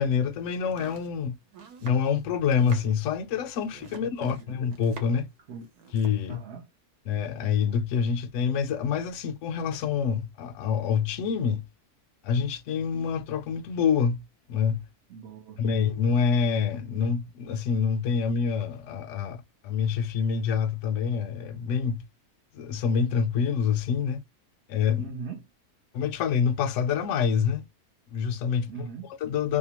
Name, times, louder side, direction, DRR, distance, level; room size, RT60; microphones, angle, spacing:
voice 1, 0.0-1.3 1.8-5.3 5.9-6.4 7.1-11.6 12.2-14.2 14.5-14.9 15.6-22.0 22.5-24.2 24.7-25.1 25.9-27.6 28.1-28.7 29.2-29.6, left 6 dB, 65° left, 0.8 m, -26 dB
Domestic sounds home sounds, 0.5-5.3 5.6-6.2, right 5 dB, 85° right, 1.2 m, -47 dB
voice 2, 6.3-6.7 15.1-15.6 24.9-25.5 28.7-29.1, right 5 dB, 60° right, 0.8 m, -39 dB
2.8 x 2.2 x 2.8 m
omnidirectional pair, 1.6 m